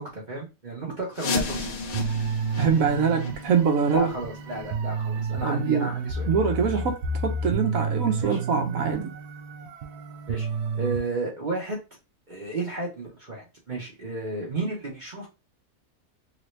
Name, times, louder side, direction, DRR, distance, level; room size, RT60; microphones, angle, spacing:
voice 1, 0.0-1.7 3.9-6.3 8.2-8.4 10.3-10.5 10.7-11.8 12.3-15.3, right 2 dB, 40° right, 0.8 m, -32 dB
sound 1, 1.1-6.7 7.1-7.2 7.7-7.8 8.4-8.5 9.1-9.2, left 3 dB, 65° left, 0.5 m, -35 dB
sound 2, 1.9-11.0, right 4 dB, 90° right, 1.1 m, -30 dB
voice 2, 2.6-4.1 5.4-5.9 6.3-9.1, right 6 dB, 70° right, 1.1 m, -24 dB
3.0 x 2.7 x 3.2 m
omnidirectional pair, 1.6 m